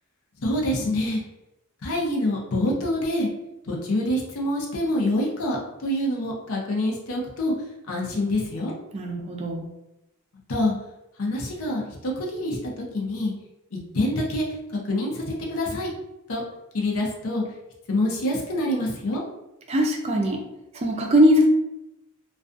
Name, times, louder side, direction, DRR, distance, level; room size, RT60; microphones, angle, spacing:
voice 1, 0.4-1.2 1.8-3.3 3.7-7.5 7.9-8.7 10.5-10.7 11.2-13.3 13.7-14.4 14.7-15.9 16.3-16.4 16.7-17.4 17.9-19.2, left 1 dB, 80° left, -2 dB, 0.6 m, -26 dB
voice 2, 8.9-9.7 19.7-20.4 20.7-21.5, equal, 30° right, 2 dB, 0.4 m, -20 dB
2.3 x 2.3 x 2.5 m, 0.91 s
head